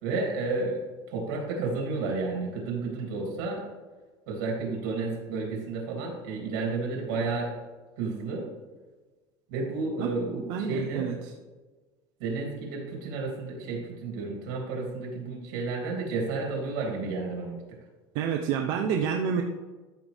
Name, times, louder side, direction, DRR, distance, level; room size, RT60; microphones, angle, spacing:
voice 1, 0.0-3.6 4.3-7.6 8.0-8.5 9.5-11.1 12.2-17.6, right 3 dB, 85° right, 0 dB, 3.1 m, -31 dB
voice 2, 10.0-11.2 18.1-19.4, right 7 dB, 65° right, 3 dB, 0.8 m, -29 dB
13.0 x 5.7 x 3.5 m, 1.3 s
cardioid pair, 160°, 10 cm